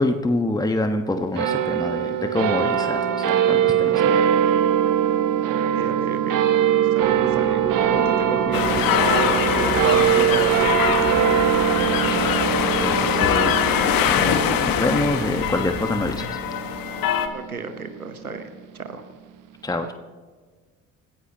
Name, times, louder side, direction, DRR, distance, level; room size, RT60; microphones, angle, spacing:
voice 1, 0.0-4.4 11.6-12.4 12.8-13.6 14.0-16.4 19.6-19.9, left 2 dB, 10° left, 7 dB, 1.3 m, -26 dB
sound 1, 1.4-18.1, right 10 dB, 45° right, 1.4 m, -22 dB
voice 2, 5.7-9.1 9.4-10.7 17.3-18.4 18.7-19.0, right 4 dB, 90° right, 8 dB, 1.1 m, -33 dB
sound 2, 7.0-14.5, right 2 dB, 10° right, 1.8 m, -33 dB
sound 3, 8.5-17.3, left 9 dB, 55° left, 1.6 m, -23 dB
30.0 x 15.5 x 2.9 m, 1.5 s
figure-of-eight pair, 50°, 42 cm